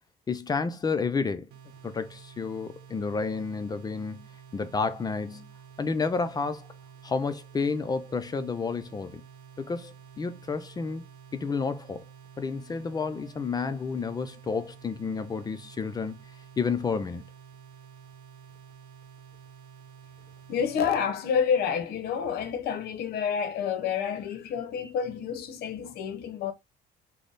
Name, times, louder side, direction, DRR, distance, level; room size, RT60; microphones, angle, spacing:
voice 1, 0.3-1.5 1.8-4.3 4.5-5.5 5.8-6.7 7.0-9.2 9.6-11.0 11.3-12.0 12.4-16.2 16.6-17.3, left 4 dB, 25° left, 0.4 m, -30 dB
sound 1, 1.5-21.1, right 7 dB, 75° right, 0.9 m, -50 dB
voice 2, 20.5-26.5, left 7 dB, 70° left, 0.7 m, -29 dB
3.4 x 2.0 x 3.8 m
cardioid pair, 110°, 17 cm